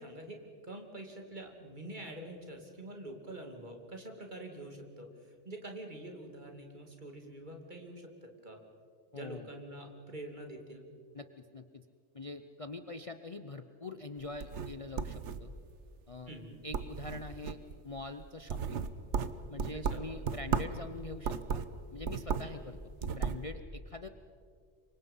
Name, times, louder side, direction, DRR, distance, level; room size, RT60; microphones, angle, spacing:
voice 1, 0.0-8.6 9.1-10.8 16.3-16.6 19.7-20.0 22.4-22.5, right 1 dB, 40° right, 2 dB, 3.0 m, -46 dB
voice 2, 9.1-9.5 11.1-11.8 12.1-15.5 16.1-16.3 16.6-17.6 17.8-18.9 19.5-21.6 21.9-24.1, left 2 dB, 35° left, 8 dB, 0.8 m, -44 dB
sound 1, 14.2-15.7 16.2-16.4 16.7-17.7 18.2-20.8 21.2-22.6 22.9-23.4, right 6 dB, 80° right, 1.3 m, -35 dB
27.5 x 24.5 x 5.6 m, 2.1 s
omnidirectional pair, 1.2 m